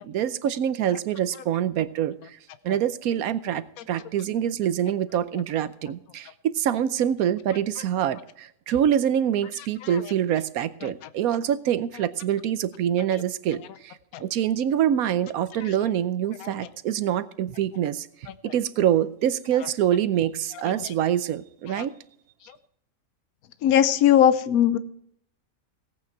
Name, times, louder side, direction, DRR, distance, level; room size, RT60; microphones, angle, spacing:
voice 1, 0.0-2.4 2.6-18.1 18.4-21.9, right 10 dB, 90° right, 14 dB, 1.2 m, -25 dB
voice 2, 23.6-24.8, left 10 dB, 85° left, 13 dB, 1.1 m, -18 dB
17.5 x 8.6 x 4.6 m, 0.71 s
omnidirectional pair, 1.5 m